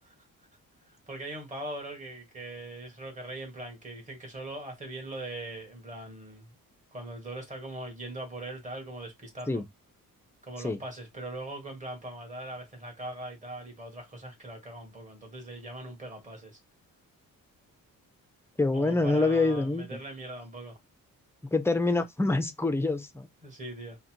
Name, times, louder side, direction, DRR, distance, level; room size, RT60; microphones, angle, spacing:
voice 1, 0.9-6.5 6.9-9.6 10.4-16.6 18.7-20.8 23.4-24.0, right 1 dB, 20° right, 1.7 m, -41 dB
voice 2, 18.6-19.9 21.4-23.3, left 2 dB, 10° left, 0.4 m, -26 dB
3.9 x 2.1 x 4.4 m
wide cardioid pair, 165°, 34 cm